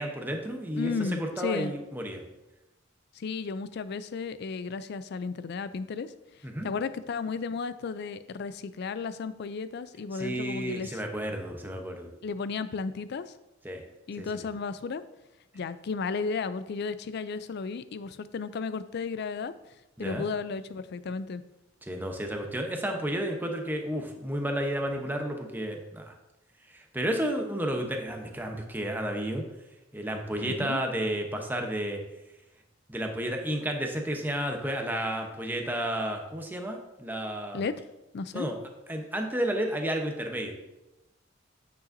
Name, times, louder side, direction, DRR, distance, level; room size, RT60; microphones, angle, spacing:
voice 1, 0.0-2.2 6.4-6.7 10.1-12.1 13.6-13.8 14.2-14.4 20.0-20.2 21.8-26.1 26.7-29.4 29.9-32.0 32.9-37.6 38.3-38.6 38.9-40.5, right 1 dB, 10° right, 3 dB, 0.8 m, -32 dB
voice 2, 0.7-1.7 3.2-6.1 6.6-10.9 12.2-13.3 14.1-15.0 15.5-19.5 20.0-21.4 30.4-30.8 37.5-37.7 38.1-38.5, left 4 dB, 55° left, 14 dB, 0.4 m, -34 dB
8.6 x 6.8 x 2.6 m, 0.96 s
head